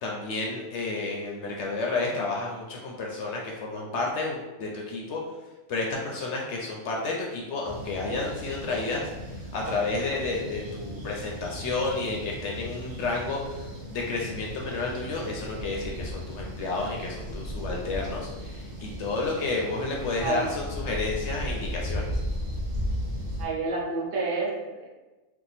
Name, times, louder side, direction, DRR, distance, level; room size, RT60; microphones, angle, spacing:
voice 1, 0.0-5.2 5.7-9.0 9.5-22.1, left 3 dB, 65° left, -1 dB, 0.8 m, -31 dB
sound 1, 7.6-23.5, equal, 45° right, 0.6 m, -36 dB
voice 2, 20.2-20.5 23.4-24.9, right 4 dB, 65° right, -3 dB, 1.1 m, -29 dB
2.8 x 2.3 x 3.9 m, 1.2 s
omnidirectional pair, 1.5 m